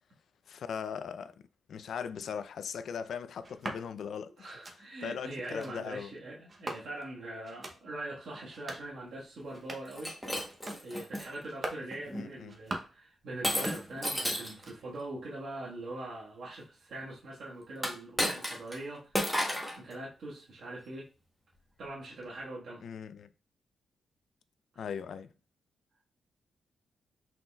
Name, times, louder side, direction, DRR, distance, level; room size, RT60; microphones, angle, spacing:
voice 1, 0.5-1.3 1.7-4.5 5.0-6.1 12.1-12.5 22.8-23.3 24.8-25.3, left 7 dB, 65° left, 0.4 m, -39 dB
sound 1, 3.4-3.8 4.4-4.8 5.4-5.7 6.5-7.1 7.4-7.8 8.4-8.9 9.4-10.0 10.4-10.8 11.4-11.9 12.4-13.0 13.4-14.2 14.4-15.0, right 2 dB, 30° right, 0.7 m, -43 dB
voice 2, 4.4-10.1 10.8-21.1 21.8-22.9 24.7-24.8, right 1 dB, 65° right, 1.4 m, -42 dB
Shatter, 9.9-11.3 11.9-12.3 13.4-14.6 17.8-18.8 19.1-19.8, equal, ahead, 1.0 m, -32 dB
5.8 x 3.9 x 2.3 m
wide cardioid pair, 135°, 0 cm